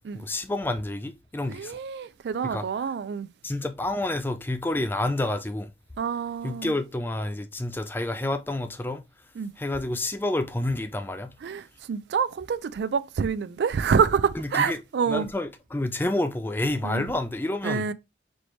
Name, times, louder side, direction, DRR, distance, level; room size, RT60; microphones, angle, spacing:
voice 1, 0.1-1.8 2.4-2.7 3.4-5.7 6.4-9.0 9.6-11.3 14.4-14.8 15.1-17.9, left 1 dB, 10° left, 0.3 m, -29 dB
voice 2, 1.5-3.3 6.0-6.7 9.4-9.5 11.4-15.3 16.8-17.1 17.6-17.9, right 6 dB, 70° right, 0.3 m, -27 dB
4.2 x 3.2 x 3.1 m
head